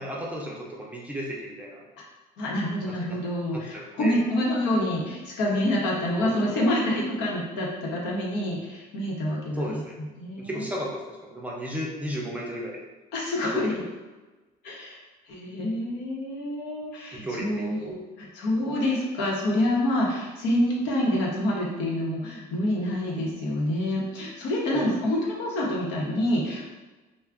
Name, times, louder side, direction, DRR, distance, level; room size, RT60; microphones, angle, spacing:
voice 1, 0.0-1.8 2.9-3.2 3.5-4.2 6.2-6.6 9.6-10.0 10.4-12.8 13.7-13.8 17.1-17.7 24.7-24.9, equal, 10° right, -3 dB, 0.5 m, -34 dB
voice 2, 2.4-10.7 13.1-13.8 14.6-15.0 15.3-26.7, left 1 dB, 90° left, -3 dB, 0.8 m, -27 dB
2.4 x 2.1 x 3.4 m, 1.2 s
cardioid pair, 110°, 17 cm